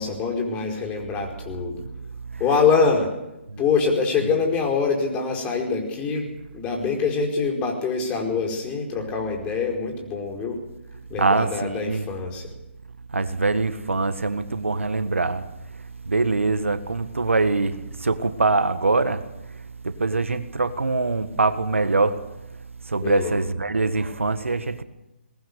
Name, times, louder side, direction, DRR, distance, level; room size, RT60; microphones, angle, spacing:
voice 1, 0.0-1.8 2.4-3.1 3.6-10.6 11.1-12.5 23.0-23.3, left 5 dB, 20° left, 4.8 m, -24 dB
voice 2, 11.2-12.1 13.1-22.4 22.8-24.8, right 3 dB, 85° right, 1.6 m, -24 dB
22.0 x 19.0 x 6.8 m
figure-of-eight pair, 145°, 7 cm